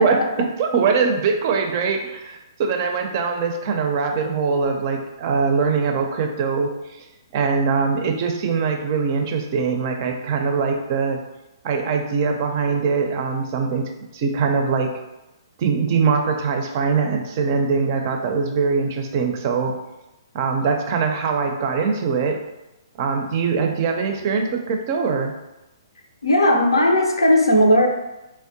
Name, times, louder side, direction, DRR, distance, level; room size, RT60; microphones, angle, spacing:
voice 1, 0.0-7.0 7.3-11.2 11.6-14.9 15.6-19.7 20.3-22.4 23.0-25.3, right 5 dB, 40° right, 3 dB, 0.4 m, -22 dB
voice 2, 26.2-27.9, left 1 dB, 80° left, 3 dB, 0.5 m, -17 dB
3.4 x 2.1 x 2.6 m, 0.97 s
figure-of-eight pair, 125°, 2 cm